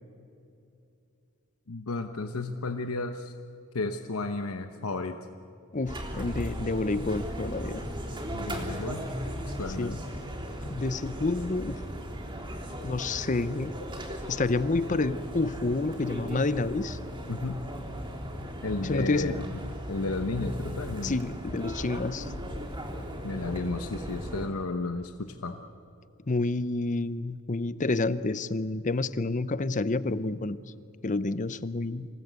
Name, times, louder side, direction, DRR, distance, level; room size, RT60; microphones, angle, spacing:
voice 1, 1.7-3.3 3.7-5.2 8.3-9.1 9.6-10.0 17.3-17.6 18.6-19.6 19.9-21.2 23.2-25.6, left 3 dB, 90° left, 7 dB, 1.0 m, -33 dB
voice 2, 5.7-7.8 9.8-10.0 10.7-11.8 12.8-13.7 14.3-17.0 18.8-19.4 21.0-22.3 26.3-30.6 31.0-32.1, left 3 dB, 35° left, 15 dB, 0.7 m, -29 dB
sound 1, 5.9-24.5, equal, 20° right, 3.5 m, -37 dB
27.0 x 18.0 x 8.2 m, 2.7 s
head